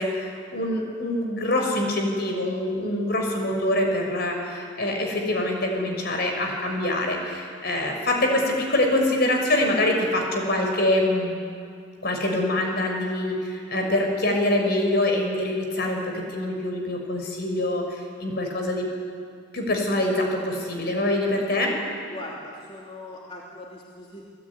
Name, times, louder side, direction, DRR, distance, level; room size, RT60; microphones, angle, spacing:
voice 1, 0.0-11.4 12.0-18.9 19.5-21.7, left 1 dB, 55° left, 2 dB, 6.1 m, -25 dB
voice 2, 22.1-24.2, left 1 dB, 30° left, -3 dB, 2.9 m, -40 dB
29.0 x 19.0 x 9.9 m, 2.4 s
head